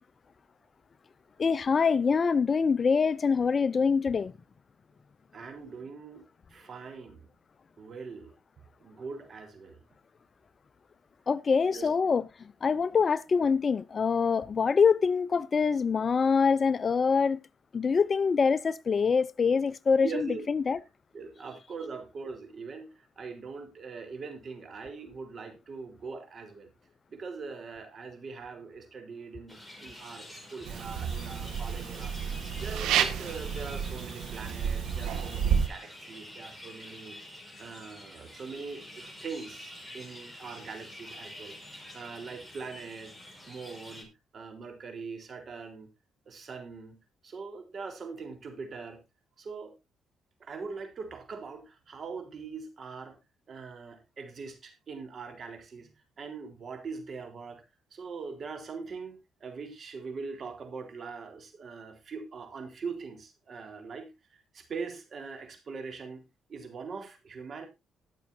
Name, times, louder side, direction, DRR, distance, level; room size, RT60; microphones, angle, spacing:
voice 1, 1.4-4.3 11.3-12.2 12.6-17.4 17.7-20.8, left 5 dB, 40° left, 0.5 m, -25 dB
voice 2, 5.3-7.3 7.8-8.3 8.8-9.8 11.7-11.9 20.0-20.8 21.1-26.7 27.1-32.1 32.5-37.2 37.6-43.1 43.5-44.1 44.3-45.9 46.3-47.0 47.2-49.0 49.4-49.8 50.4-53.2 53.5-57.6 57.9-66.2 66.5-67.7, right 5 dB, 50° right, 3.8 m, -42 dB
sound 1, 29.5-44.0, left 1 dB, 5° left, 5.2 m, -47 dB
sound 2, 30.7-35.7, right 8 dB, 90° right, 1.8 m, -30 dB
20.5 x 7.1 x 2.7 m
cardioid pair, 90°, 0 cm